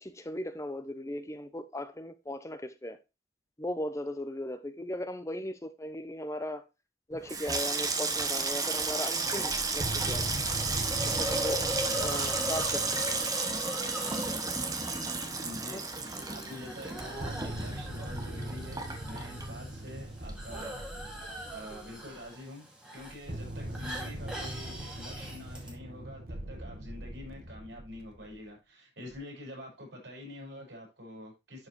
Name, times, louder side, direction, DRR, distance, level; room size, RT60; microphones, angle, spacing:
voice 1, 0.0-3.0 3.6-6.6 7.1-10.3 11.1-11.6 12.0-13.3 15.7-15.8, left 1 dB, 15° left, 0.6 m, -37 dB
Water tap faucet / Sink (filling or washing), 7.1-20.0 20.3-20.9 21.2-21.5, right 4 dB, 20° right, 1.0 m, -33 dB
sound 1, 9.5-13.4 16.9-22.3 23.0-28.4 29.1-29.2, right 1 dB, 55° right, 1.2 m, -40 dB
Hiss, 10.3-25.7, equal, 5° right, 2.1 m, -40 dB
voice 2, 15.4-15.8 16.3-21.0 21.5-31.7, left 1 dB, 80° right, 5.6 m, -46 dB
11.0 x 4.8 x 3.1 m
head